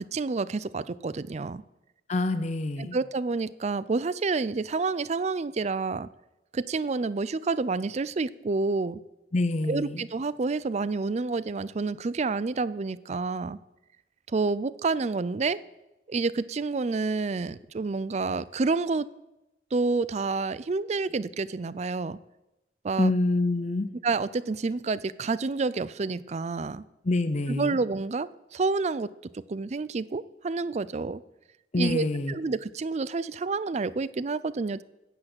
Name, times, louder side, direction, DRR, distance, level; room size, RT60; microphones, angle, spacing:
voice 1, 0.0-1.6 2.8-6.1 6.5-9.0 9.7-13.6 14.3-15.6 16.1-19.1 19.7-22.2 22.8-23.1 24.0-26.8 27.5-29.1 29.5-31.2 31.8-34.8, right 3 dB, 40° right, 18 dB, 0.4 m, -29 dB
voice 2, 2.1-3.0 9.3-10.0 23.0-23.9 27.0-27.8 31.7-32.3, left 2 dB, 40° left, 10 dB, 0.7 m, -26 dB
10.0 x 8.9 x 7.8 m, 0.96 s
head